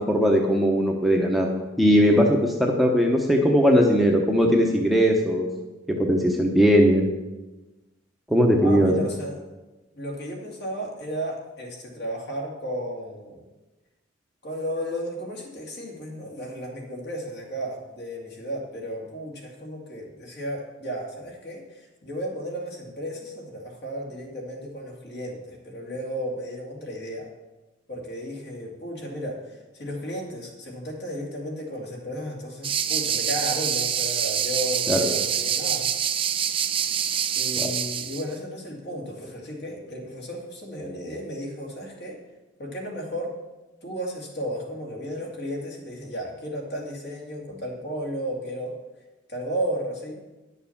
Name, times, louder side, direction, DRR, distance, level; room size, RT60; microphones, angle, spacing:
voice 1, 0.0-5.5 6.0-7.0 8.3-8.9 34.9-35.1 37.6-37.7, equal, ahead, 0 dB, 0.9 m, -19 dB
voice 2, 8.6-9.4 9.9-13.4 14.4-27.3 27.9-35.9 36.8-36.9 37.4-42.2 42.6-43.3 43.8-48.8 49.3-50.2, equal, 55° left, -1 dB, 2.5 m, -34 dB
sound 1, 32.6-38.2, right 8 dB, 25° right, 0.4 m, -26 dB
10.0 x 6.7 x 7.2 m, 1.1 s
head